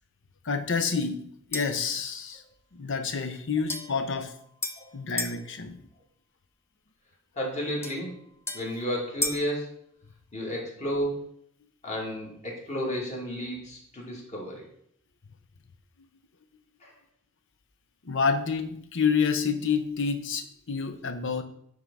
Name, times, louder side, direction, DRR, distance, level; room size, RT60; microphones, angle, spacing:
voice 1, 0.4-2.4 2.7-4.3 4.9-5.8 18.0-21.4, left 5 dB, 60° left, 8 dB, 0.8 m, -28 dB
sound 1, 1.5-1.9 3.7-5.4 7.8-9.5, left 2 dB, 10° left, 0.6 m, -35 dB
voice 2, 7.4-8.2 8.5-9.7 10.3-11.2 11.8-14.6 16.8-16.9, equal, 35° left, -3 dB, 2.5 m, -32 dB
9.3 x 3.7 x 5.5 m, 0.70 s
head